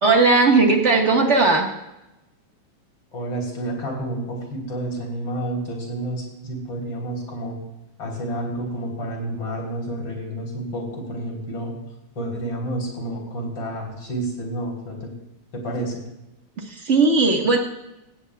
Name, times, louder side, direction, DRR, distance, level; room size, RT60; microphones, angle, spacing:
voice 1, 0.0-1.7 16.6-17.6, right 3 dB, 35° right, 1 dB, 1.1 m, -17 dB
voice 2, 3.1-7.6 8.0-11.8 12.1-15.1 15.5-16.0, right 1 dB, 40° left, 0 dB, 4.3 m, -30 dB
17.5 x 16.5 x 2.4 m, 0.96 s
omnidirectional pair, 3.5 m